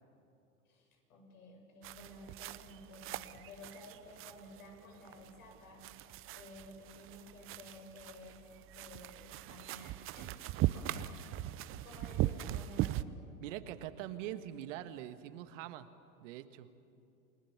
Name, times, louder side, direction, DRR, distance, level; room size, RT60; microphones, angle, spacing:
voice 1, 0.7-11.1 11.8-13.1, left 2 dB, 75° left, 2 dB, 7.3 m, -54 dB
sound 1, 1.8-13.0, right 15 dB, 30° right, 0.7 m, -39 dB
voice 2, 13.4-15.9 16.2-16.7, right 12 dB, 55° right, 11 dB, 1.5 m, -43 dB
29.0 x 20.0 x 7.2 m, 2.6 s
hypercardioid pair, 110°, 43 cm